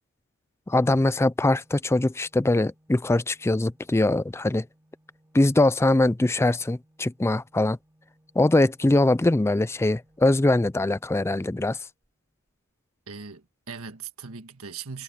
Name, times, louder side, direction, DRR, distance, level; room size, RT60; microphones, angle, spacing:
voice 1, 0.7-4.7 5.3-7.8 8.4-11.8, left 2 dB, 10° left, 0.4 m, -22 dB
Organ, 1.4-12.3, right 1 dB, 10° right, 3.1 m, -63 dB
voice 2, 13.1-15.0, right 5 dB, 75° right, 1.6 m, -39 dB
head